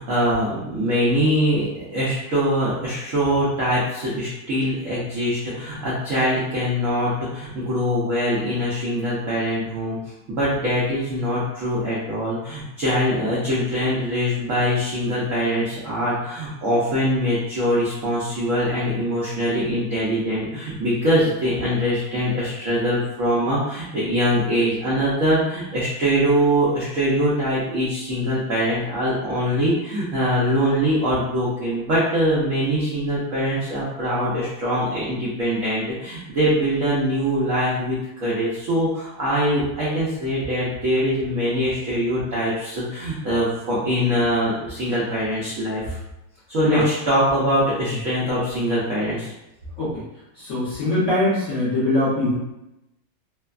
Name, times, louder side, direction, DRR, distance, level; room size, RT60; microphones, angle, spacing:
voice 1, 0.0-10.0 10.3-46.0 46.5-49.3, equal, 75° right, -8 dB, 0.7 m, -23 dB
voice 2, 50.4-52.4, left 1 dB, 55° left, -10 dB, 0.8 m, -22 dB
3.2 x 2.1 x 2.3 m, 0.92 s
omnidirectional pair, 2.2 m